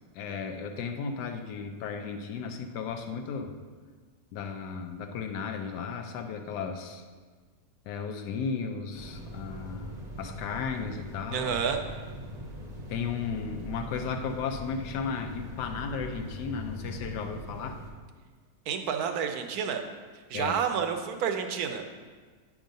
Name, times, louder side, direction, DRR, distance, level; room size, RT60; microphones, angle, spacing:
voice 1, 0.1-3.5 4.3-7.0 7.9-11.6 12.9-17.8 20.3-20.6, left 6 dB, 85° left, 5 dB, 1.2 m, -35 dB
sound 1, 8.9-17.9, equal, 35° right, 0.7 m, -41 dB
voice 2, 11.3-11.8 18.7-19.8 20.3-21.8, right 7 dB, 70° right, 6 dB, 1.0 m, -29 dB
8.8 x 3.6 x 5.1 m, 1.5 s
omnidirectional pair, 1.8 m